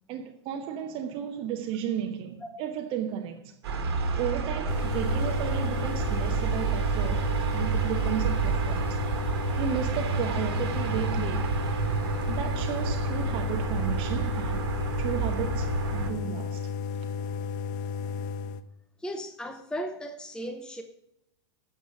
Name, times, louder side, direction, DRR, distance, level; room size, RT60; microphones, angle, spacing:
voice 1, 0.1-3.5 4.2-9.0 9.6-11.6 12.3-14.7 15.0-16.6, right 9 dB, 40° right, 0.9 m, -34 dB
sound 1, 3.6-16.1, right 5 dB, 65° right, 1.6 m, -29 dB
sound 2, 4.7-18.6, left 5 dB, 45° left, 0.7 m, -33 dB
voice 2, 19.0-20.8, equal, 5° left, 0.8 m, -36 dB
9.4 x 7.0 x 6.0 m
figure-of-eight pair, 95°, 14 cm